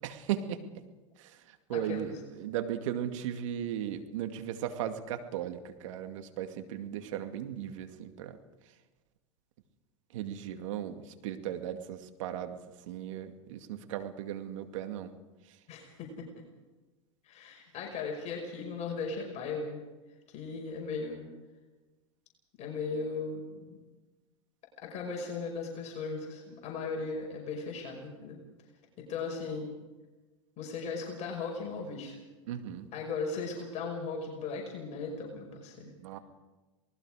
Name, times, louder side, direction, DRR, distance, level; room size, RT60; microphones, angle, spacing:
voice 1, 0.0-0.6 1.2-8.4 10.1-15.1 15.5-15.6 32.5-32.9 35.8-36.2, right 10 dB, 75° right, 7 dB, 2.3 m, -37 dB
voice 2, 1.7-2.1 15.7-16.3 17.2-19.8 20.3-21.3 22.6-23.8 24.8-28.4 29.0-29.7 30.6-32.2 32.9-35.9, left 4 dB, 45° left, 1 dB, 5.5 m, -37 dB
27.5 x 19.5 x 5.0 m, 1.2 s
hypercardioid pair, 105°, 16 cm